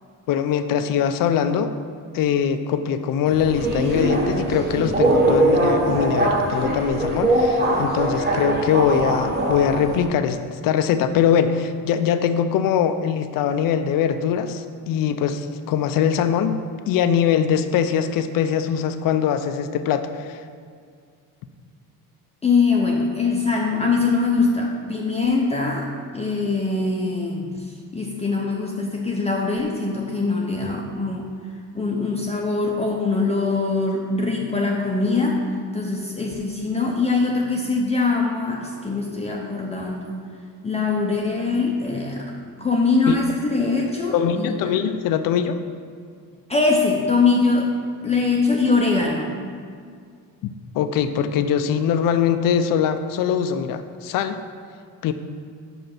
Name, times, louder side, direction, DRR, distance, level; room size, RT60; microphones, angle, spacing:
voice 1, 0.3-1.7 2.1-16.6 16.9-20.4 43.1-43.2 44.1-45.6 50.4-54.4 55.0-55.1, left 8 dB, 65° left, 9 dB, 0.5 m, -22 dB
Subway metro underground, 3.3-10.0, right 1 dB, 30° right, 1.0 m, -21 dB
voice 2, 22.4-31.3 31.7-35.4 35.7-40.2 40.6-44.7 46.5-49.4, left 3 dB, 20° left, -1 dB, 0.6 m, -22 dB
5.5 x 5.3 x 5.8 m, 2.2 s
cardioid pair, 125°, 36 cm